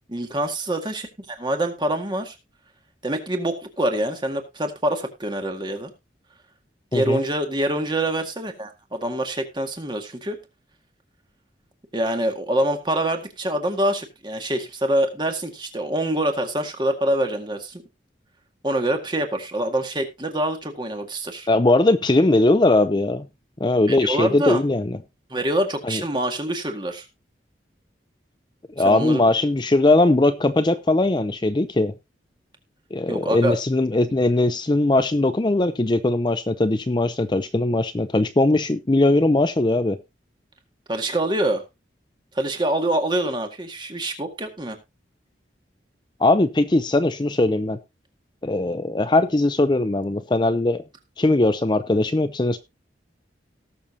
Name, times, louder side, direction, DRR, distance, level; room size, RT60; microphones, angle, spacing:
voice 1, 0.1-2.4 3.0-5.9 6.9-10.4 11.9-17.8 18.6-21.5 23.9-24.6 25.3-27.1 28.8-29.2 30.1-30.2 33.1-33.6 40.9-41.6 42.4-44.8, right 1 dB, 25° right, 5 dB, 1.9 m, -25 dB
voice 2, 21.5-23.3 23.6-25.0 25.8-26.0 28.8-31.9 32.9-40.0 46.2-47.8 48.4-50.8 51.2-52.6, left 2 dB, 25° left, 11 dB, 0.5 m, -20 dB
18.5 x 6.9 x 2.8 m, 0.24 s
head